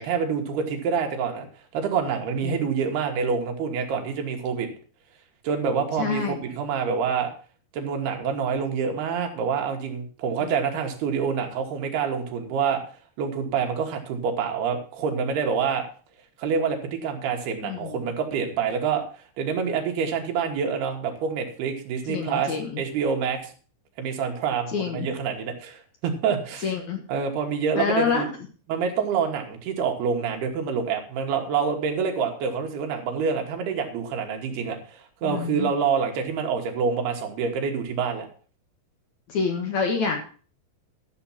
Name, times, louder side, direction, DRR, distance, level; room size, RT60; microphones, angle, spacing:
voice 1, 0.0-1.5 1.7-4.7 5.4-7.3 7.7-12.8 13.2-15.8 16.4-19.0 19.4-23.5 24.0-26.7 27.1-28.3 28.7-38.3, right 6 dB, 80° right, 3 dB, 3.6 m, -27 dB
voice 2, 6.0-6.4 10.4-10.6 17.6-18.0 22.1-22.8 24.7-25.1 26.6-27.0 27.8-28.2 35.2-35.7 39.3-40.2, left 5 dB, 60° left, 4 dB, 2.2 m, -27 dB
12.5 x 7.2 x 5.7 m, 0.40 s
omnidirectional pair, 4.5 m